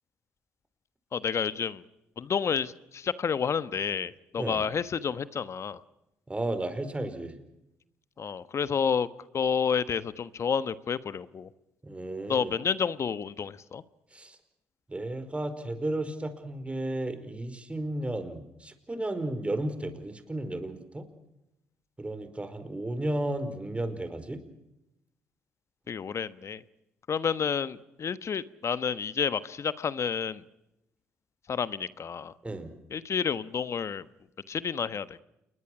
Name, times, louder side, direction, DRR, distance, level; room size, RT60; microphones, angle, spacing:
voice 1, 1.1-1.8 2.2-5.8 8.2-9.1 9.3-11.5 12.3-13.8 25.9-26.6 27.1-30.4 31.5-32.3 32.9-34.0 34.5-35.2, left 6 dB, 45° left, 15 dB, 1.3 m, -30 dB
voice 2, 6.3-7.3 11.8-12.5 14.1-14.4 14.9-21.0 22.0-24.4 32.4-32.7, right 1 dB, 20° right, 9 dB, 5.0 m, -33 dB
28.5 x 22.5 x 6.2 m, 0.87 s
hypercardioid pair, 55°, 6 cm